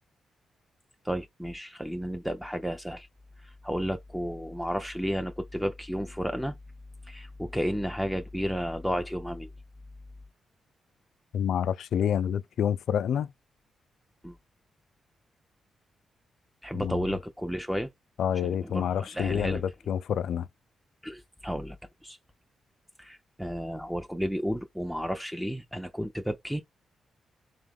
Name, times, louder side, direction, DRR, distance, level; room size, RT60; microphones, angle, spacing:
voice 1, 1.0-3.1 3.4-6.5 7.1-9.5 14.2-14.4 16.6-17.9 18.4-19.6 21.0-21.8 22.0-22.2 23.0-26.6, equal, ahead, 0.5 m, -32 dB
voice 2, 11.3-13.3 16.7-17.0 18.2-20.5, left 8 dB, 80° left, 0.3 m, -28 dB
3.5 x 2.9 x 3.5 m
cardioid pair, 100°, 0 cm